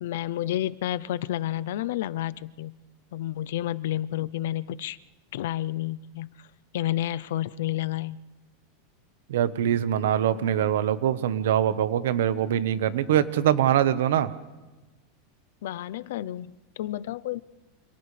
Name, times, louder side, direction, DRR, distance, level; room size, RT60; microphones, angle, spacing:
voice 1, 0.0-2.8 3.1-5.0 5.3-6.3 6.7-8.2 15.6-17.4, left 13 dB, 70° left, 17 dB, 0.6 m, -30 dB
voice 2, 9.3-14.3, right 10 dB, 85° right, 12 dB, 1.2 m, -23 dB
29.5 x 27.0 x 3.4 m, 1.1 s
supercardioid pair, 165°, 0 cm